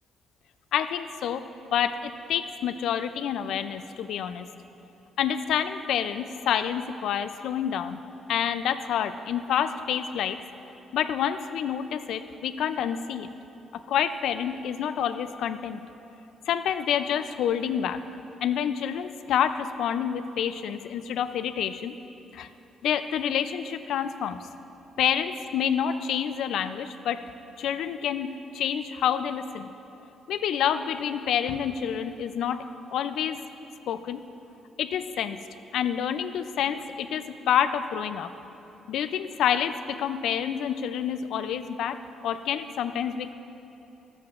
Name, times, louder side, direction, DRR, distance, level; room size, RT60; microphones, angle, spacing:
voice 1, 0.7-1.4 1.7-4.5 5.2-8.0 8.3-10.4 10.9-13.3 13.9-15.8 16.5-18.0 18.4-21.9 22.3-22.5 22.8-24.4 25.0-27.2 27.6-29.7 30.3-32.6 32.9-33.4 33.9-34.2 34.8-35.4 35.7-38.3 38.9-43.3, left 9 dB, 80° left, 11 dB, 0.3 m, -28 dB
13.5 x 7.6 x 2.4 m, 2.9 s
cardioid pair, 90°, 0 cm